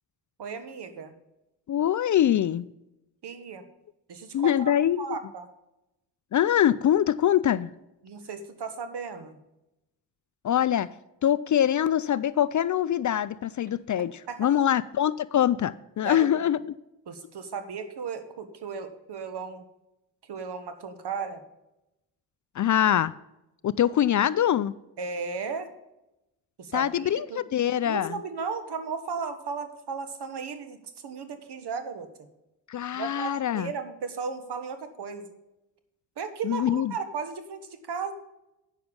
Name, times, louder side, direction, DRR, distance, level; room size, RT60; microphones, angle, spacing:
voice 1, 0.4-1.1 3.2-3.6 4.1-4.7 5.0-5.5 8.0-9.4 14.3-14.5 16.0-16.3 17.1-19.6 20.2-21.4 25.0-25.7 26.6-27.4 27.8-30.8 31.0-32.1 32.9-35.3 36.2-38.1, right 5 dB, 60° right, 1.6 m, -35 dB
voice 2, 1.7-2.6 4.3-5.2 6.3-7.7 10.4-10.9 11.2-16.7 22.6-23.1 23.6-24.7 26.7-28.2 32.7-33.7 36.4-36.9, left 10 dB, 40° left, 0.4 m, -24 dB
9.2 x 6.8 x 5.3 m
supercardioid pair, 55°, 46 cm